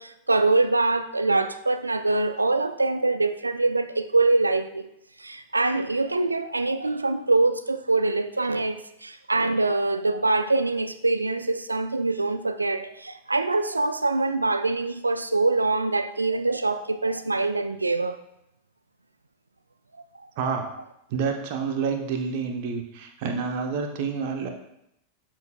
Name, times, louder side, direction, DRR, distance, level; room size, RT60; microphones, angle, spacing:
voice 1, 0.0-4.9 5.2-18.2, right 2 dB, 80° right, 0.4 m, -24 dB
voice 2, 21.1-24.5, right 5 dB, 50° right, 1.0 m, -28 dB
12.0 x 4.6 x 2.4 m
figure-of-eight pair, 90°, 0 cm